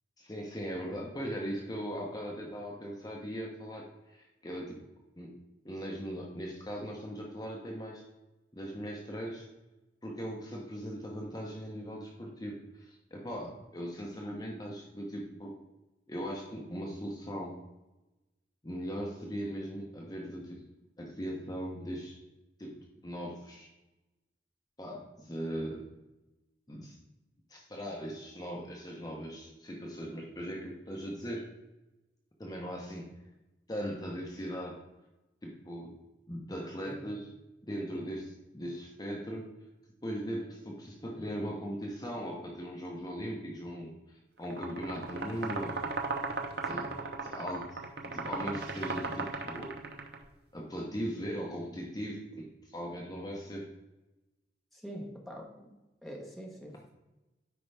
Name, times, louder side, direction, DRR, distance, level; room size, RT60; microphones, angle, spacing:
voice 1, 0.2-4.8 5.2-5.3 5.6-8.0 8.5-9.5 10.0-15.5 16.1-17.6 18.6-20.6 21.0-22.2 22.6-22.7 23.0-23.7 24.8-25.9 26.7-27.0 27.5-31.5 32.4-33.1 33.7-34.8 35.4-35.9 36.3-37.3 37.7-39.4 40.0-45.9 46.6-47.8 48.1-49.8 50.5-53.7, equal, 20° left, -1 dB, 0.9 m, -39 dB
sound 1, 44.4-50.2, right 3 dB, 60° right, 0.8 m, -36 dB
voice 2, 54.7-55.7 56.0-57.0, equal, ahead, -1 dB, 1.1 m, -45 dB
9.5 x 4.6 x 3.4 m, 1.0 s
head